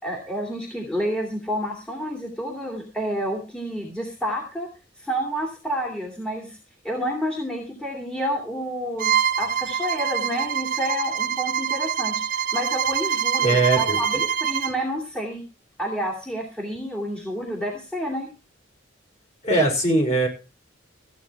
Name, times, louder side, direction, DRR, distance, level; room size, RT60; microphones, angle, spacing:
voice 1, 0.0-4.7 5.0-6.6 6.8-15.4 15.8-18.3, equal, 5° left, 0 dB, 2.7 m, -29 dB
Bowed string instrument, 9.0-14.8, right 8 dB, 45° right, 0.8 m, -25 dB
voice 2, 13.4-14.0 19.4-20.3, right 2 dB, 35° left, 2 dB, 5.4 m, -20 dB
15.5 x 9.1 x 4.7 m, 0.32 s
head